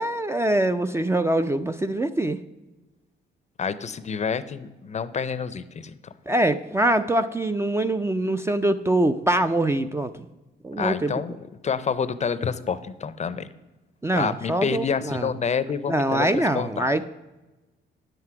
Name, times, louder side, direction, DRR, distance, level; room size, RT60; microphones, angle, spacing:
voice 1, 0.0-2.4 6.3-10.3 10.6-11.1 14.0-15.3 15.9-17.1, right 1 dB, 15° right, 9 dB, 0.4 m, -24 dB
voice 2, 3.6-6.0 10.8-11.4 11.6-13.5 14.1-16.3 16.5-16.9, left 6 dB, 35° left, 14 dB, 0.5 m, -28 dB
9.5 x 7.7 x 4.7 m, 1.1 s
cardioid pair, 90°, 20 cm